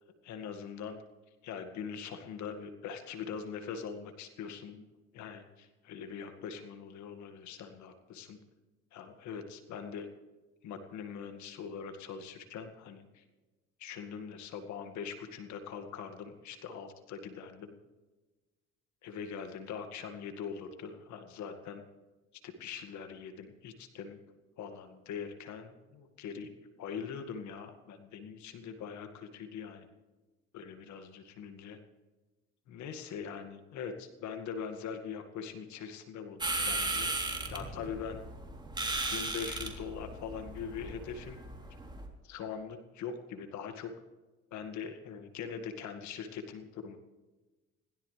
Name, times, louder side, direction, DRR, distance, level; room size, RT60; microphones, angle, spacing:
voice 1, 0.2-1.0 1.4-4.9 5.1-8.4 8.9-10.1 10.6-13.2 13.8-17.7 19.0-21.8 22.4-24.2 24.6-26.5 26.8-29.9 30.5-31.8 32.7-37.1 37.5-38.2 39.1-41.4 42.2-43.9 44.5-47.0, left 6 dB, 70° left, 7 dB, 2.1 m, -42 dB
sound 1, 36.4-42.1, right 2 dB, 15° right, 3.4 m, -36 dB
21.5 x 16.5 x 3.4 m, 1.2 s
supercardioid pair, 75°, 30 cm